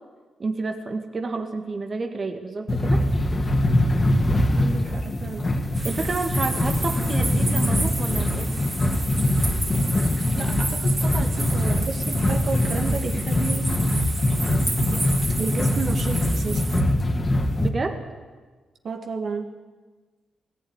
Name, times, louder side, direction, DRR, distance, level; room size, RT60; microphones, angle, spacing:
voice 1, 0.4-3.1 5.8-8.6 17.6-18.0, right 3 dB, 40° right, 5 dB, 1.9 m, -30 dB
sound 1, 2.7-17.7, left 1 dB, 30° left, 2.3 m, -23 dB
voice 2, 4.3-5.5 10.4-13.7 15.4-16.7 18.8-19.5, right 4 dB, 65° right, 4 dB, 2.1 m, -32 dB
sound 2, 5.7-16.8, right 2 dB, 25° right, 3.7 m, -32 dB
19.0 x 15.0 x 9.8 m, 1.4 s
cardioid pair, 80°, 0 cm